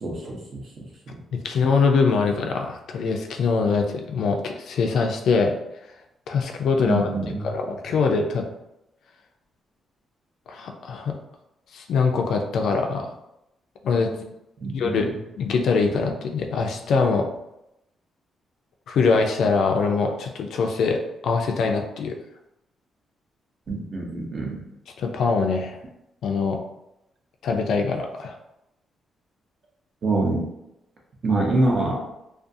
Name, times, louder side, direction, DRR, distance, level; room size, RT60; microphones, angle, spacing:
voice 1, 0.0-1.2 6.8-7.5 14.6-15.0 23.7-24.6 30.0-30.4 31.2-32.1, right 2 dB, 40° right, -2 dB, 0.6 m, -25 dB
voice 2, 1.4-5.5 6.3-7.1 7.4-8.4 10.5-11.2 11.7-13.1 13.8-14.3 14.7-17.3 18.9-22.2 25.0-25.8 26.2-26.6 27.4-28.3, left 4 dB, 70° left, 3 dB, 0.3 m, -23 dB
2.4 x 2.3 x 2.6 m, 0.86 s
cardioid pair, 145°, 0 cm